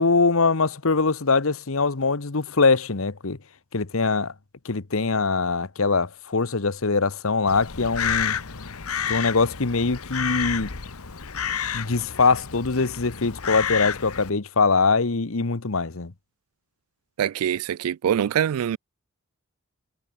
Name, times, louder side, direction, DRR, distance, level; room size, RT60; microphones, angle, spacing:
voice 1, 0.0-3.4 3.7-4.3 4.6-8.4 9.1-10.7 11.7-16.1, left 4 dB, 70° left, 1.1 m, -22 dB
Crow, 7.5-14.3, left 8 dB, 85° left, 1.3 m, -30 dB
voice 2, 17.2-18.8, right 9 dB, 85° right, 0.3 m, -24 dB
head